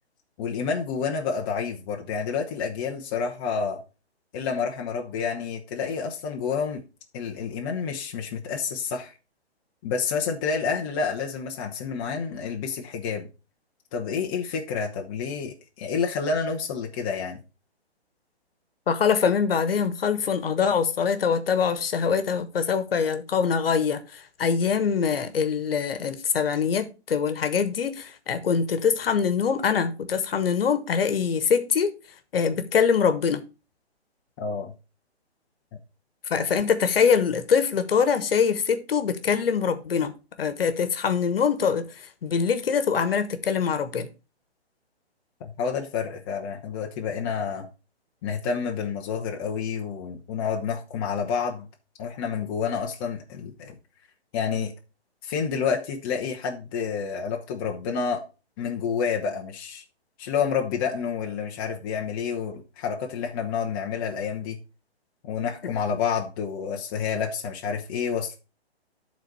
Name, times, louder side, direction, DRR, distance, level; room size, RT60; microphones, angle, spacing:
voice 1, 0.4-3.8 4.3-6.8 7.1-9.1 9.8-13.3 13.9-17.4 34.4-34.7 45.4-47.7 48.2-51.7 52.0-53.8 54.3-54.7 55.2-58.2 58.6-59.8 60.2-64.6 65.2-68.4, left 6 dB, 20° left, 0.7 m, -29 dB
voice 2, 18.9-31.9 32.3-33.4 36.3-40.1 40.4-44.1, left 6 dB, 60° left, 1.2 m, -24 dB
10.0 x 4.0 x 4.6 m
hypercardioid pair, 140°, 33 cm